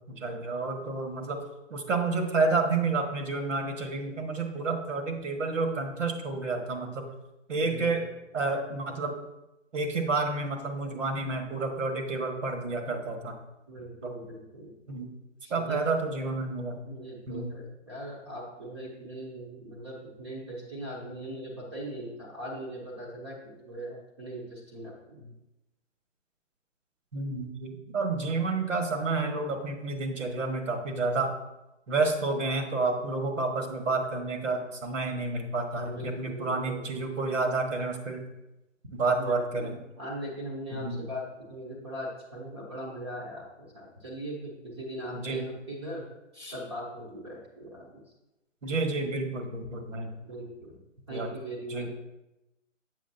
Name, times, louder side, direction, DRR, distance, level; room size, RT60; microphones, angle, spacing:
voice 1, 0.1-1.4 1.7-7.0 7.5-9.1 9.7-13.4 14.0-14.1 14.9-15.1 15.5-16.8 17.3-17.5 27.1-31.3 31.9-38.2 38.9-39.7 40.7-41.1 45.1-45.4 48.6-50.1 51.1-51.3 51.7-51.9, right 3 dB, 75° right, 4 dB, 1.4 m, -30 dB
voice 2, 7.6-8.0 13.7-14.7 15.4-15.8 16.8-25.3 35.7-36.8 39.1-46.1 46.3-48.0 50.2-50.8 51.1-51.9, right 1 dB, 20° right, -4 dB, 0.7 m, -40 dB
7.4 x 6.4 x 2.7 m, 0.95 s
hypercardioid pair, 160°, 38 cm